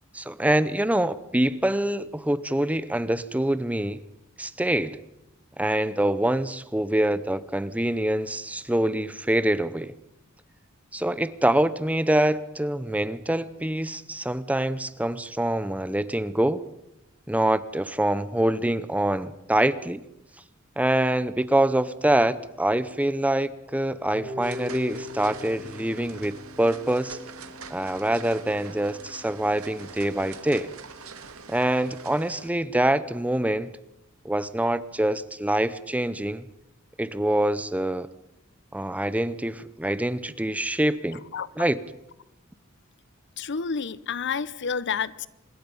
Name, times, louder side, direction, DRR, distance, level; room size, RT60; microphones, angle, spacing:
voice 1, 0.1-4.0 4.4-5.0 5.6-9.9 10.9-16.7 17.3-20.0 20.8-27.2 27.7-30.7 31.5-33.7 34.2-36.4 37.0-38.1 38.7-41.2 41.6-41.8, right 1 dB, 5° right, 0.7 m, -25 dB
Harp, 24.1-30.2, left 2 dB, 50° right, 7.5 m, -42 dB
sound 1, 24.4-32.5, right 5 dB, 85° right, 2.0 m, -44 dB
voice 2, 41.3-41.7 43.4-45.3, left 6 dB, 55° left, 0.8 m, -30 dB
25.5 x 21.5 x 5.5 m
head